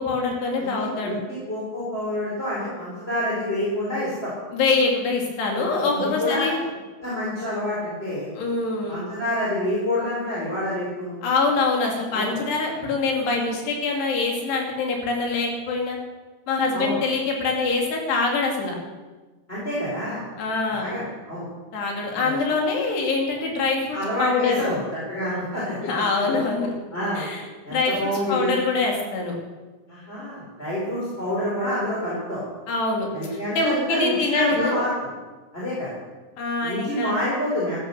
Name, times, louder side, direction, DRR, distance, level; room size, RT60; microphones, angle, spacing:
voice 1, 0.0-1.1 4.5-6.6 8.4-9.0 11.2-16.0 16.5-18.8 20.4-21.0 21.7-24.7 25.8-26.7 27.2-27.4 27.7-29.3 32.7-34.8 36.4-37.2, left 3 dB, 60° left, 0 dB, 4.5 m, -24 dB
voice 2, 0.6-4.3 5.6-5.7 5.9-6.5 7.0-8.3 8.9-11.2 12.1-12.4 16.7-17.0 19.5-20.2 20.7-21.5 22.2-22.4 23.9-25.9 26.2-26.4 26.9-27.2 27.6-28.5 29.9-32.4 33.1-34.9 35.5-35.9 36.6-37.8, left 1 dB, 15° left, -7 dB, 3.8 m, -27 dB
14.0 x 13.5 x 6.8 m, 1.3 s
omnidirectional pair, 5.7 m